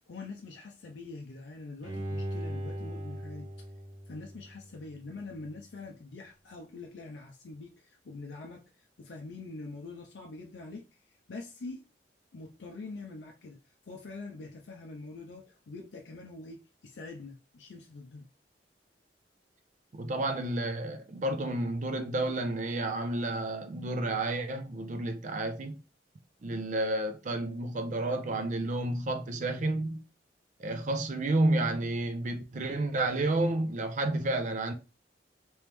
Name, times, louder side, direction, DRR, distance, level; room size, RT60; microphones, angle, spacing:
voice 1, 0.1-3.7 4.1-11.9 12.3-18.3, left 3 dB, 85° left, 0.5 m, -44 dB
Bowed string instrument, 1.8-4.9 5.4-5.5, equal, 30° right, 1.0 m, -39 dB
voice 2, 19.9-25.8 26.4-30.0 30.6-34.7, right 2 dB, 45° right, 0.5 m, -31 dB
3.1 x 3.0 x 3.3 m
head